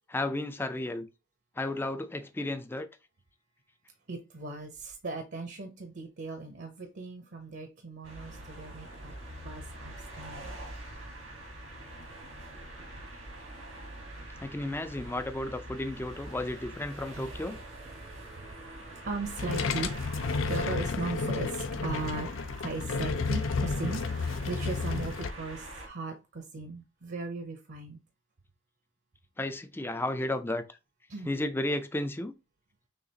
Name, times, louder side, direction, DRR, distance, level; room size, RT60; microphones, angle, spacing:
voice 1, 0.1-1.1 1.6-2.9 14.4-17.6 29.4-30.6 31.3-32.3, left 1 dB, 10° left, 0.4 m, -33 dB
voice 2, 4.1-9.1 9.4-10.6 17.1-17.2 18.9-22.3 22.6-28.0 31.1-31.3, right 3 dB, 60° right, 0.8 m, -38 dB
sound 1, 8.0-25.9, right 1 dB, 90° right, 1.6 m, -45 dB
sound 2, 19.2-25.3, left 4 dB, 80° left, 0.5 m, -31 dB
6.5 x 2.4 x 2.9 m
head